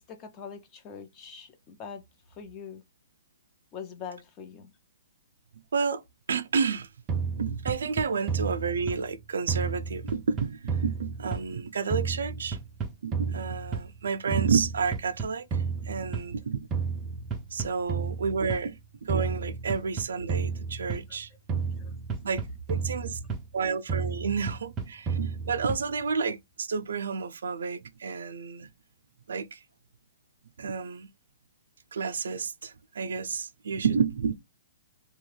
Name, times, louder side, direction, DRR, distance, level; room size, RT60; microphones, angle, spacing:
voice 1, 0.0-2.0 2.4-2.8 3.7-4.7, left 7 dB, 25° left, 0.6 m, -42 dB
voice 2, 6.3-6.9 7.4-12.6 13.0-15.4 15.8-16.6 17.5-18.8 19.0-21.3 22.2-22.4 22.7-23.2 23.5-28.7 29.3-29.6 30.6-31.1 31.9-34.3, right 5 dB, 85° right, 0.4 m, -30 dB
sound 1, 7.1-9.2 9.5-11.6 11.9-14.0 14.3-16.4 16.7-18.7 19.1-21.2 21.5-23.6 23.9-26.0, right 5 dB, 20° right, 0.4 m, -32 dB
3.0 x 2.2 x 3.2 m
hypercardioid pair, 165°, 0 cm